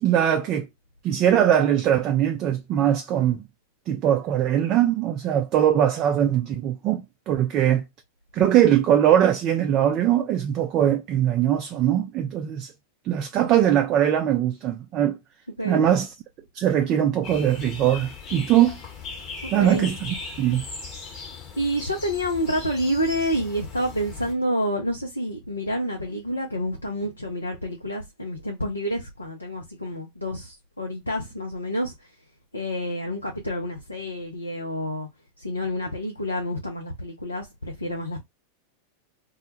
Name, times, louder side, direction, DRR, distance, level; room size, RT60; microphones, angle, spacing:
voice 1, 0.0-0.7 1.0-3.4 3.9-7.8 8.3-12.7 13.0-15.2 15.6-16.1 16.5-18.7 19.5-20.6, right 10 dB, 35° right, 0.3 m, -21 dB
sound 1, 17.2-24.3, left 4 dB, 35° left, 0.9 m, -38 dB
voice 2, 19.5-19.9 21.6-31.9 32.5-35.1 35.4-38.2, equal, 85° left, 0.5 m, -28 dB
2.1 x 2.1 x 2.9 m
figure-of-eight pair, 90°, 0 cm